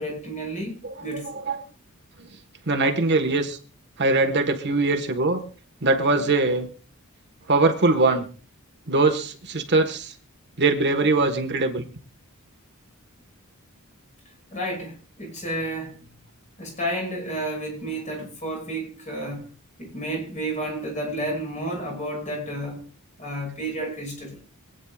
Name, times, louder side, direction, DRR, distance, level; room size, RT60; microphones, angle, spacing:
voice 1, 0.0-1.4 14.5-15.9 16.6-19.4 19.8-22.8 23.2-24.4, right 1 dB, 35° left, 5.9 m, -31 dB
voice 2, 2.7-3.6 4.0-5.4 5.8-6.7 7.5-8.3 8.9-10.1 10.6-11.9, right 3 dB, 50° right, 1.5 m, -21 dB
26.5 x 9.4 x 2.4 m
head